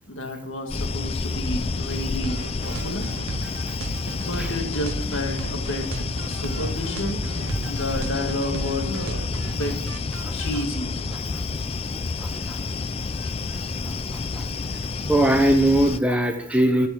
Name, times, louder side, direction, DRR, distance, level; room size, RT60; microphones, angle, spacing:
voice 1, 0.0-3.1 4.2-5.9 6.2-7.2 7.7-9.8 10.3-10.9, left 1 dB, 70° left, 3 dB, 1.9 m, -30 dB
sound 1, 0.7-16.0, left 3 dB, 30° left, 0.4 m, -29 dB
sound 2, 2.2-10.6, right 3 dB, 80° right, 0.7 m, -36 dB
voice 2, 12.2-12.6 14.3-14.4 15.1-16.9, right 1 dB, 5° right, 5 dB, 0.8 m, -21 dB
11.5 x 6.7 x 5.9 m, 0.72 s
head